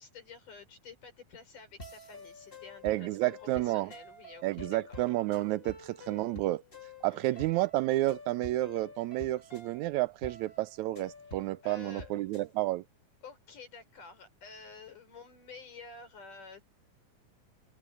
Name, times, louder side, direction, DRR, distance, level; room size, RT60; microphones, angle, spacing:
voice 1, 0.0-5.0 7.1-7.5 11.3-12.1 13.2-16.6, left 4 dB, 90° left, 7.6 m, -51 dB
sound 1, 1.8-12.5, left 2 dB, 20° left, 2.5 m, -49 dB
voice 2, 2.8-3.9 4.4-6.6 7.0-12.8, right 17 dB, 80° right, 1.8 m, -31 dB
open air
omnidirectional pair, 3.6 m